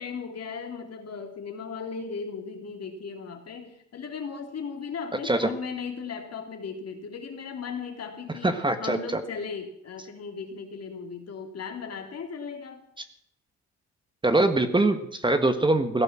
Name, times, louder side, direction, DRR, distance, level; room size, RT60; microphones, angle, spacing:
voice 1, 0.0-8.5 8.8-12.8, left 5 dB, 55° left, 4 dB, 3.3 m, -37 dB
voice 2, 8.4-9.2 14.2-16.0, right 2 dB, 15° right, 9 dB, 1.5 m, -23 dB
17.0 x 11.0 x 7.6 m, 0.72 s
cardioid pair, 90°, 30 cm